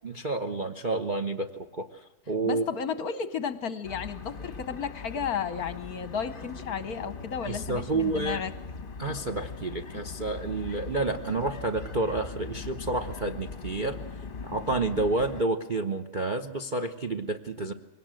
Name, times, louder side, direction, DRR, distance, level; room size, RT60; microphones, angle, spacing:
voice 1, 0.0-2.6 7.4-8.4 9.0-14.0 14.5-17.7, right 2 dB, 40° right, 7 dB, 0.7 m, -30 dB
voice 2, 2.4-8.5, left 7 dB, 55° left, 13 dB, 1.2 m, -33 dB
sound 1, 3.8-15.4, left 4 dB, 30° left, 1.2 m, -40 dB
22.5 x 18.5 x 7.6 m, 1.0 s
omnidirectional pair, 2.2 m